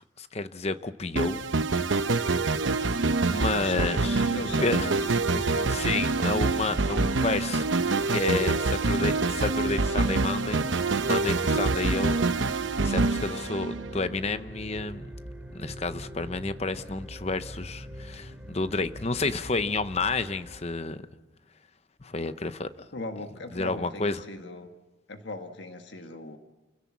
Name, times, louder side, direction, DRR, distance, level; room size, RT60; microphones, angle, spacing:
voice 1, 0.2-1.4 3.3-4.2 4.6-4.9 5.7-7.7 8.1-10.6 11.0-12.2 12.8-15.1 15.5-21.0 22.0-22.7 23.5-24.2, left 3 dB, 35° left, 0.8 m, -30 dB
sound 1, 1.2-14.1, right 3 dB, 80° right, 0.9 m, -26 dB
voice 2, 3.4-6.1 22.9-24.7 25.1-26.4, left 2 dB, 65° left, 1.4 m, -39 dB
sound 2, 4.1-20.7, equal, 5° right, 2.5 m, -43 dB
29.0 x 16.5 x 7.3 m
head